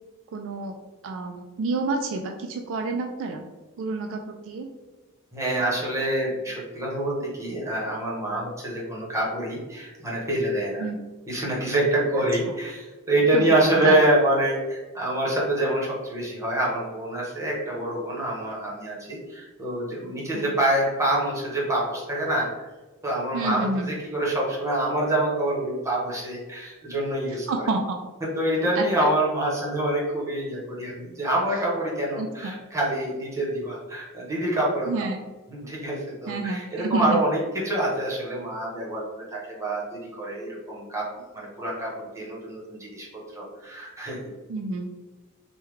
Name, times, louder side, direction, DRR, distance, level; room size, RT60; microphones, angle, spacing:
voice 1, 0.3-0.7 1.0-3.4 3.8-4.7 10.8-11.0 13.3-13.4 13.8-14.0 20.3-20.5 23.3-23.9 27.5-28.0 28.8-28.9 32.2-32.5 34.9-35.2 36.3-37.2 44.5-44.9, right 3 dB, 60° right, 3 dB, 0.3 m, -29 dB
voice 2, 5.3-10.9 11.3-22.7 23.0-27.5 28.4-35.1 35.5-37.4 37.6-41.0 41.3-43.1 43.3-44.2, right 1 dB, 15° right, -4 dB, 0.9 m, -26 dB
3.4 x 2.2 x 3.1 m, 1.2 s
head